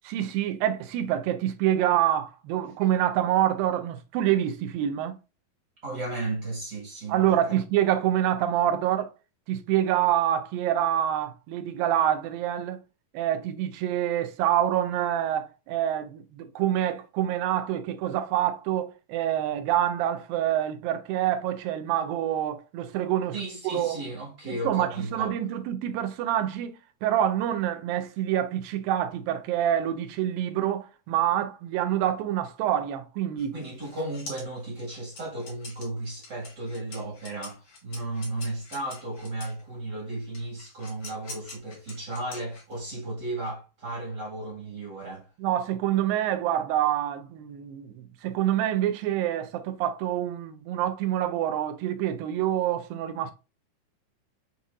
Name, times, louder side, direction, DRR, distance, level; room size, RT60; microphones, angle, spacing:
voice 1, 0.0-5.2 7.1-9.1 9.5-12.8 13.1-23.4 23.6-24.0 24.5-26.7 27.0-33.6 45.4-53.3, right 11 dB, 90° right, 2.3 m, -26 dB
voice 2, 5.8-7.6 23.3-25.3 33.5-45.3, right 2 dB, 50° right, 1.3 m, -34 dB
sound 1, 33.4-39.6 40.3-42.9, left 2 dB, 50° left, 1.3 m, -45 dB
7.3 x 2.7 x 2.4 m
omnidirectional pair, 4.1 m